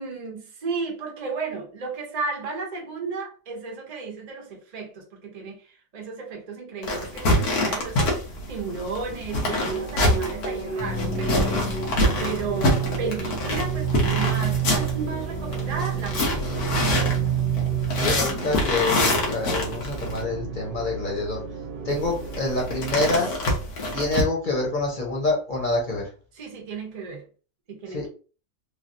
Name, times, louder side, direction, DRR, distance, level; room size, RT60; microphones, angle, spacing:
voice 1, 0.0-11.7 12.2-16.5 26.3-27.2 27.7-28.1, right 4 dB, 35° right, 0.7 m, -34 dB
sound 1, 6.8-20.2 21.9-24.2, left 1 dB, 85° left, 1.4 m, -26 dB
sound 2, 9.7-23.5, right 3 dB, 65° left, 0.3 m, -38 dB
sound 3, 10.8-23.2, right 7 dB, 85° right, 1.1 m, -30 dB
voice 2, 18.0-21.4 21.8-23.3 23.9-26.1 27.9-28.1, left 2 dB, 40° left, 0.9 m, -26 dB
3.2 x 2.4 x 2.6 m
omnidirectional pair, 1.6 m